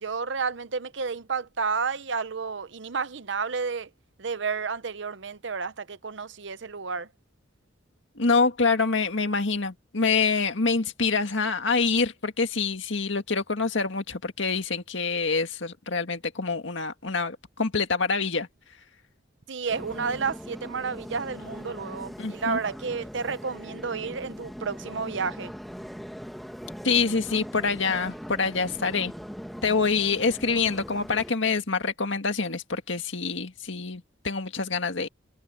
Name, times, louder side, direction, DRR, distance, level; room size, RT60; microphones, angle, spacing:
voice 1, 0.0-3.9 4.2-7.1 19.5-25.5, right 5 dB, 65° right, 0.8 m, -31 dB
voice 2, 8.2-18.5 22.2-22.6 26.8-29.1 29.6-35.1, left 4 dB, 70° left, 1.9 m, -26 dB
sound 1, 19.7-31.3, equal, ahead, 1.2 m, -40 dB
head